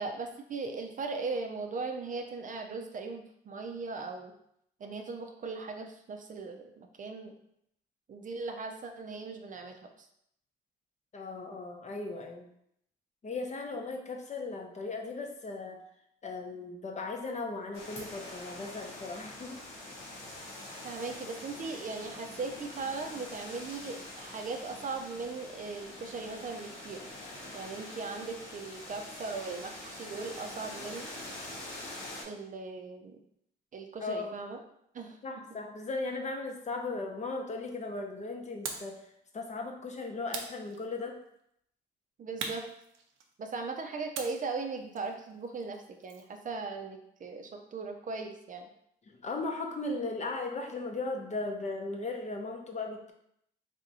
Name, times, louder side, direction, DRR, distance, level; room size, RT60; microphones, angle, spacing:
voice 1, 0.0-4.3 4.8-7.3 8.1-9.8 20.8-27.0 27.5-31.1 32.2-33.2 33.7-34.6 34.9-35.2 42.2-42.6 43.4-48.7, right 4 dB, 40° right, 4 dB, 0.5 m, -38 dB
voice 2, 11.1-12.5 13.2-15.8 16.2-19.6 34.0-34.3 35.2-41.2 49.1-53.1, left 3 dB, 35° left, 3 dB, 0.7 m, -37 dB
sound 1, 17.7-32.2, left 1 dB, 90° left, 1.2 m, -45 dB
sound 2, 38.6-39.0 40.3-41.2 42.4-43.5 44.1-46.4, right 5 dB, 90° right, 0.6 m, -42 dB
3.4 x 2.7 x 4.0 m, 0.74 s
cardioid pair, 90°, 20 cm